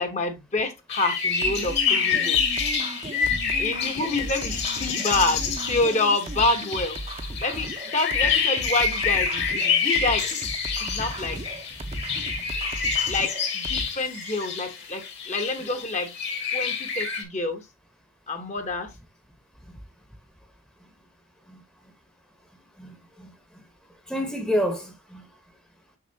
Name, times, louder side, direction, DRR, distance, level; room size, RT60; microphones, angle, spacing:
voice 1, 0.0-2.4 3.6-7.0 7.4-10.3 10.7-11.4 13.1-16.1 16.5-17.6 18.3-18.9, left 2 dB, 30° left, 1.0 m, -27 dB
sound 1, 0.9-17.2, left 6 dB, 50° left, 1.7 m, -27 dB
sound 2, 1.4-13.9, right 2 dB, 30° right, 0.7 m, -36 dB
voice 2, 10.8-11.4 11.9-12.5 13.0-13.1 15.6-15.8 18.4-18.5 19.7-19.8 20.8-20.9 21.5-21.9 22.8-25.3, equal, 5° left, 0.9 m, -33 dB
6.7 x 6.1 x 2.7 m
head